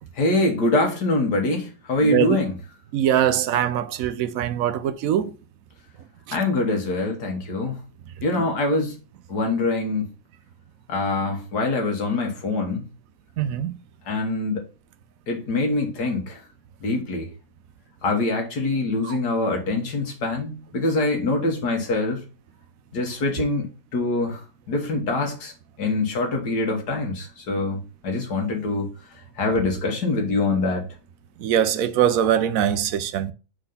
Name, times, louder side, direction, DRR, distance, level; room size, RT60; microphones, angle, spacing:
voice 1, 0.2-2.5 6.3-7.8 8.2-9.0 9.3-10.1 10.9-12.8 14.1-14.6 15.3-16.4 16.8-17.3 18.0-22.2 22.9-23.7 23.9-24.4 24.7-25.5 25.8-28.9 29.4-30.9, left 2 dB, 75° left, 2.1 m, -24 dB
voice 2, 2.0-2.4 2.9-5.3 6.3-6.4 13.4-13.7 19.0-19.2 31.4-33.3, right 10 dB, 65° right, 0.9 m, -22 dB
4.5 x 4.1 x 5.4 m
omnidirectional pair, 1.8 m